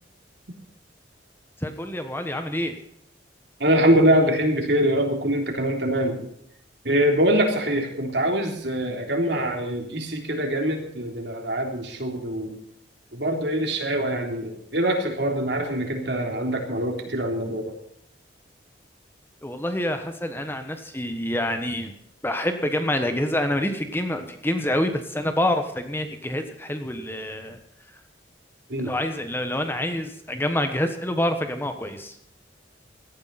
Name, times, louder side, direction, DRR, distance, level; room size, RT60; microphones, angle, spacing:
voice 1, 1.6-2.7 19.4-21.9 22.2-27.6 28.8-32.2, left 1 dB, 10° left, 7 dB, 1.3 m, -27 dB
voice 2, 3.6-6.2 6.8-12.6 13.1-17.7 28.7-28.9, right 1 dB, 60° right, 3 dB, 3.5 m, -23 dB
18.0 x 13.5 x 4.2 m, 0.70 s
head